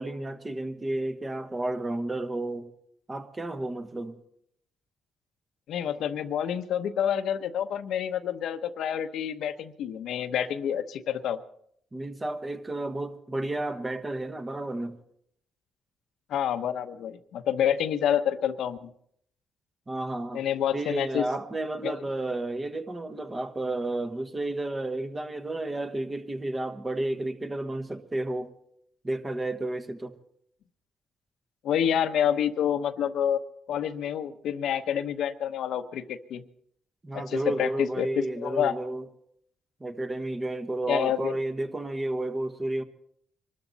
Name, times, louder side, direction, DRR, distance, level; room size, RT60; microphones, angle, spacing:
voice 1, 0.0-2.7 3.1-4.2 11.9-15.0 19.9-20.4 20.7-28.5 29.0-30.2 37.0-39.1 39.8-42.8, right 2 dB, 20° right, 1.3 m, -32 dB
voice 2, 5.7-11.4 16.3-18.9 20.3-21.3 21.8-21.9 31.6-33.4 33.7-36.4 37.1-38.1 38.4-38.7 40.9-41.3, left 9 dB, 75° left, 0.9 m, -28 dB
24.0 x 13.0 x 4.1 m
cardioid pair, 90°, 0 cm